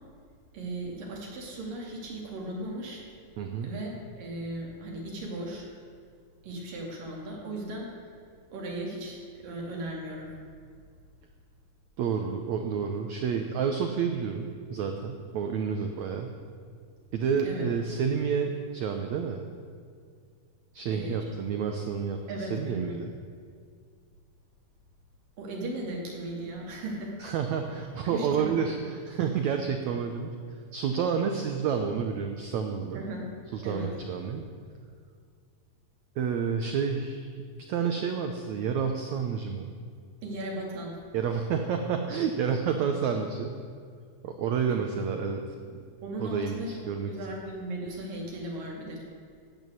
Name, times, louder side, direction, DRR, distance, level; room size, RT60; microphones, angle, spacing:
voice 1, 0.5-3.0 3.6-5.7 6.4-7.9 8.5-10.3 17.4-17.6 20.9-21.3 22.3-23.0 25.4-27.3 28.0-28.9 32.9-33.3 33.6-33.9 40.2-41.0 44.7-44.8 46.0-46.8 47.0-49.0, right 1 dB, 60° right, -2 dB, 4.1 m, -37 dB
voice 2, 3.4-3.7 12.0-16.3 17.1-19.4 20.7-23.1 27.2-30.3 30.7-33.0 33.5-34.5 36.2-37.3 37.7-39.7 41.1-43.5 44.2-45.4 45.7-45.8 46.2-47.1, right 6 dB, 85° right, 5 dB, 1.6 m, -29 dB
14.5 x 9.1 x 9.1 m, 2.1 s
omnidirectional pair, 4.5 m